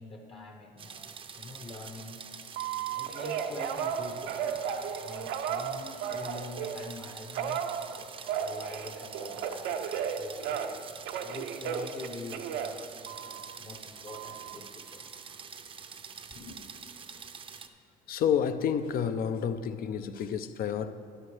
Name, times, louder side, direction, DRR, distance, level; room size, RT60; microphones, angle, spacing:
voice 1, 0.0-2.2 2.9-7.6 8.3-10.6 11.2-15.1 16.3-16.6, left 2 dB, 35° left, 0.9 m, -45 dB
sound 1, 0.8-17.7, right 6 dB, 30° right, 0.5 m, -46 dB
Telephone, 2.6-6.9 7.3-10.8 11.1-13.6 14.1-14.6, right 8 dB, 85° right, 0.6 m, -34 dB
voice 2, 18.1-20.9, left 8 dB, 60° left, 0.5 m, -29 dB
12.5 x 10.0 x 3.3 m
cardioid pair, 110°, 17 cm